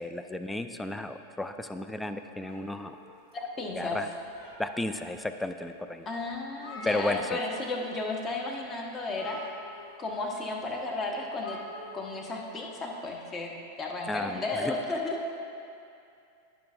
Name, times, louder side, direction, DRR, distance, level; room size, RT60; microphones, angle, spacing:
voice 1, 0.0-3.0 3.7-4.1 4.6-6.1 6.8-7.4 14.1-14.7, left 1 dB, 5° left, 9 dB, 0.4 m, -33 dB
sound 1, 2.4-3.6 4.1-5.0 5.6-5.7 6.0-6.1 6.3-7.7 8.0-8.2 9.1-10.1 11.3-12.2, left 1 dB, 45° left, 1.7 m, -45 dB
voice 2, 3.3-4.0 6.1-9.4 10.0-11.6 11.9-13.5 13.8-15.2, left 2 dB, 25° left, 1 dB, 1.1 m, -33 dB
14.5 x 6.1 x 2.5 m, 2.6 s
figure-of-eight pair, 90°, 0 cm